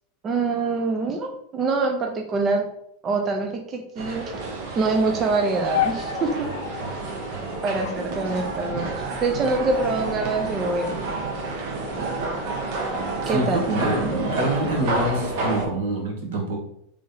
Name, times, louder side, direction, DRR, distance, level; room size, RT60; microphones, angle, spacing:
voice 1, 0.2-2.6 3.0-4.2 4.7-6.5 7.6-8.9 9.2-10.9 13.3-13.7, right 3 dB, 20° right, 2 dB, 0.3 m, -24 dB
sound 1, 4.0-15.7, right 2 dB, 45° right, 0.7 m, -29 dB
sound 2, 5.7-7.0 7.8-9.0 9.8-10.3 10.6-11.2 11.9-13.2 13.9-14.4, left 12 dB, 60° left, 0.3 m, -33 dB
voice 2, 13.3-16.6, right 1 dB, 75° right, 1 dB, 1.2 m, -25 dB
3.2 x 2.7 x 3.7 m, 0.72 s
supercardioid pair, 175°, 0 cm